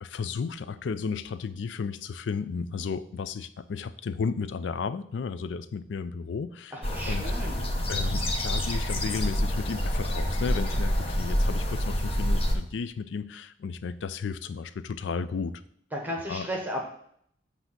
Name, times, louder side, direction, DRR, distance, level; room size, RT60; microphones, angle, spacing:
voice 1, 0.0-6.8 7.1-7.3 7.9-15.5 16.3-16.5, left 5 dB, 90° left, 14 dB, 0.4 m, -33 dB
voice 2, 6.7-7.7 15.9-16.8, equal, 10° right, 0 dB, 1.1 m, -34 dB
sound 1, 6.8-12.6, equal, 35° left, 0.8 m, -27 dB
7.9 x 2.8 x 5.9 m, 0.66 s
head